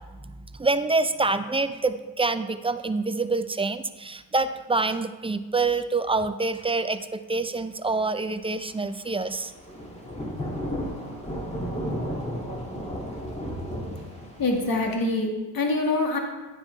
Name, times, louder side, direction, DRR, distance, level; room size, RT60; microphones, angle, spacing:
voice 1, 0.2-9.5, right 3 dB, 10° right, 11 dB, 0.4 m, -26 dB
Thunder / Rain, 9.4-14.9, equal, 15° left, 2.2 m, -33 dB
voice 2, 14.4-16.2, left 2 dB, 45° left, 1 dB, 1.8 m, -25 dB
9.6 x 7.7 x 3.3 m, 1.2 s
supercardioid pair, 60°, 48 cm